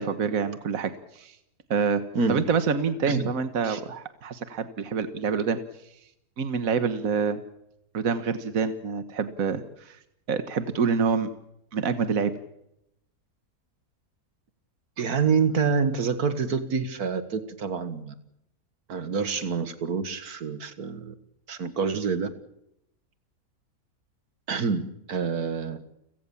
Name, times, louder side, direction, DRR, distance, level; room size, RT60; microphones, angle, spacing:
voice 1, 0.0-1.4 1.7-2.0 2.3-5.6 6.4-7.4 7.9-10.0 10.3-11.3 11.7-12.3, right 5 dB, 65° right, 10 dB, 1.7 m, -26 dB
voice 2, 15.0-18.1 18.9-21.1 21.5-22.3 24.5-25.9, right 5 dB, 85° right, 11 dB, 2.1 m, -27 dB
30.0 x 17.0 x 7.2 m, 0.80 s
omnidirectional pair, 1.6 m